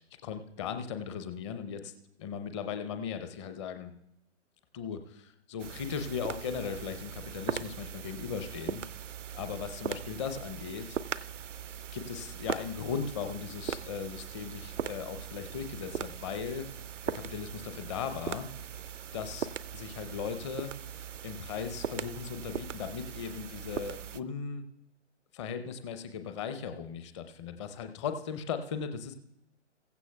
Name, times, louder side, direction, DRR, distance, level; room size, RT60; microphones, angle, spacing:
voice 1, 0.0-3.9 4.7-8.8 9.3-11.0 11.9-16.7 17.0-18.5 19.1-19.5 19.7-20.7 21.2-24.6 25.3-29.1, left 6 dB, 25° left, 9 dB, 0.7 m, -37 dB
sound 1, 5.6-24.2, right 8 dB, 85° right, 0.5 m, -40 dB
16.0 x 15.5 x 2.3 m, 0.82 s
figure-of-eight pair, 125°, 36 cm